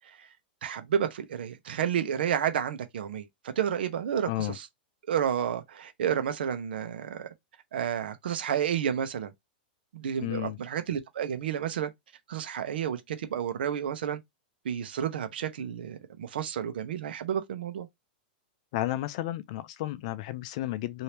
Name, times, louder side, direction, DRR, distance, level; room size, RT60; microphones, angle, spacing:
voice 1, 0.6-3.3 3.6-4.7 5.1-7.3 7.7-9.3 9.9-11.9 12.3-14.2 14.6-17.9, right 9 dB, 80° right, 0.8 m, -31 dB
voice 2, 10.2-10.6 18.7-21.0, left 15 dB, 40° left, 0.4 m, -32 dB
2.9 x 2.7 x 3.3 m
supercardioid pair, 170°, 5 cm